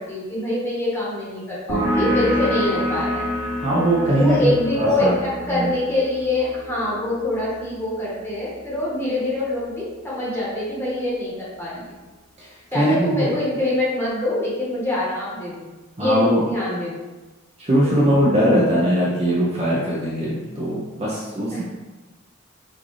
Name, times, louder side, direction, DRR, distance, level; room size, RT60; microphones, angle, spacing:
voice 1, 0.0-3.2 4.2-11.9 12.7-15.7 16.0-17.0 17.8-18.2 21.5-21.6, left 1 dB, 10° left, -8 dB, 1.3 m, -24 dB
sound 1, 1.7-9.0, equal, 60° right, 1.5 m, -28 dB
voice 2, 3.6-5.1 5.5-5.7 12.4-12.5 12.7-13.3 16.0-16.4 17.6-21.6, right 1 dB, 30° right, -6 dB, 0.7 m, -20 dB
6.0 x 2.6 x 3.2 m, 1.2 s
head